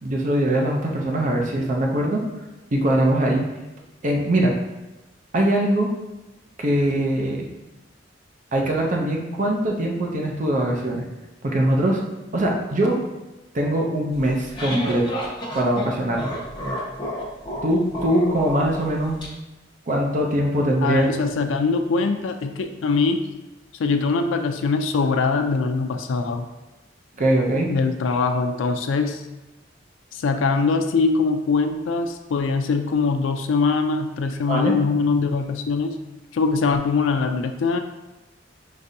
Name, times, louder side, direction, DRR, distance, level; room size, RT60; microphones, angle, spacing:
voice 1, 0.0-2.2 2.7-3.4 4.0-4.5 5.3-5.9 6.6-7.5 8.5-11.0 11.4-12.0 12.3-13.0 13.5-15.0 15.5-16.2 17.6-19.2 19.9-21.1 27.2-27.7 34.5-34.8, right 1 dB, 40° right, 0 dB, 0.5 m, -22 dB
sound 1, 14.2-19.3, equal, 25° left, 1.2 m, -30 dB
voice 2, 20.8-23.2 23.8-26.5 27.7-29.2 30.1-36.0 36.3-37.8, left 4 dB, 85° left, 6 dB, 0.4 m, -22 dB
6.4 x 2.6 x 2.6 m, 1.1 s
head